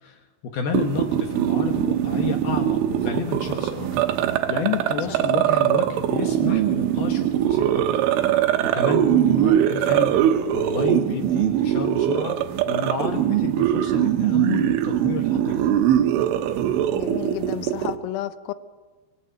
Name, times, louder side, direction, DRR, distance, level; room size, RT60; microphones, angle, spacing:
voice 1, 0.0-3.9 4.2-7.8 8.2-8.3 8.6-10.2 10.5-12.4 12.7-15.7, left 6 dB, 65° left, 5 dB, 2.6 m, -30 dB
sound 1, 0.7-18.0, right 11 dB, 75° right, 3.4 m, -22 dB
voice 2, 16.9-18.5, left 14 dB, 85° left, 13 dB, 3.6 m, -32 dB
25.0 x 18.5 x 8.9 m, 1.4 s
omnidirectional pair, 5.9 m